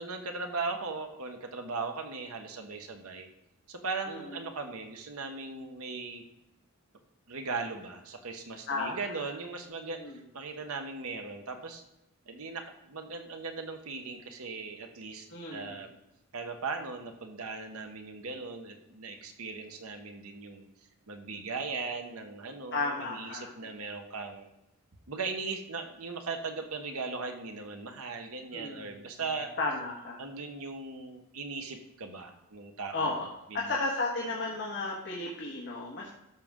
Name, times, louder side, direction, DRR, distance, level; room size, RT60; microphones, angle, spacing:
voice 1, 0.0-3.3 3.7-6.2 7.3-10.0 10.3-11.8 12.3-15.9 16.3-20.6 21.1-24.5 25.1-29.5 30.2-33.1 33.5-33.7, right 4 dB, 70° right, 5 dB, 1.1 m, -38 dB
voice 2, 8.7-9.2 10.0-10.2 15.3-15.8 22.7-23.5 28.5-28.9 29.6-30.2 32.9-33.3 33.5-36.1, left 3 dB, 55° left, -3 dB, 1.5 m, -33 dB
13.0 x 6.3 x 3.7 m, 0.89 s
head